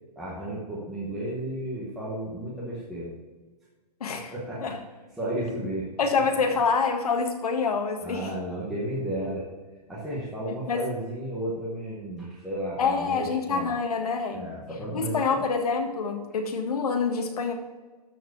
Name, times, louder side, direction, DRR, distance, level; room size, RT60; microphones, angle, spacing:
voice 1, 0.2-3.1 4.3-4.7 5.2-5.9 8.0-9.5 9.9-13.7 14.3-15.4, right 1 dB, ahead, -8 dB, 0.9 m, -33 dB
voice 2, 4.0-4.3 4.6-4.8 6.0-8.3 10.7-10.9 12.8-14.5 14.9-17.5, left 5 dB, 65° left, 4 dB, 1.7 m, -26 dB
12.5 x 4.6 x 4.8 m, 1.3 s
hypercardioid pair, 175°, 21 cm